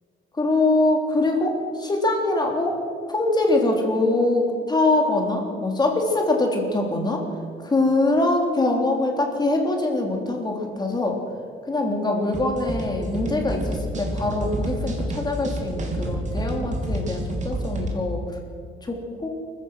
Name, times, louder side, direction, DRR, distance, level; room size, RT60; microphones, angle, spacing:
voice 1, 0.3-2.8 3.1-7.2 7.6-11.2 11.7-18.2 18.8-19.3, left 2 dB, 20° left, 2 dB, 3.4 m, -23 dB
sound 1, 12.3-17.9, right 1 dB, 35° right, 3.3 m, -29 dB
27.0 x 15.5 x 6.4 m, 2.2 s
cardioid pair, 175°, 21 cm